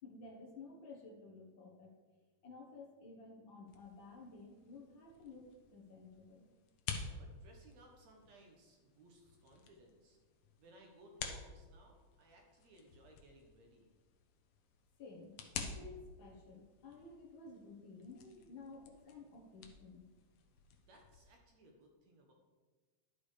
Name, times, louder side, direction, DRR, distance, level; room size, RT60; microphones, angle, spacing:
voice 1, 0.0-1.9 2.4-6.5 15.0-20.1, left 3 dB, 50° left, 0 dB, 1.7 m, -54 dB
sound 1, 3.7-21.3, left 6 dB, 65° left, 1.7 m, -51 dB
voice 2, 7.0-10.2 10.6-13.9 20.8-22.3, right 1 dB, 65° right, 1 dB, 2.4 m, -62 dB
11.5 x 6.7 x 4.9 m, 1.3 s
omnidirectional pair, 3.5 m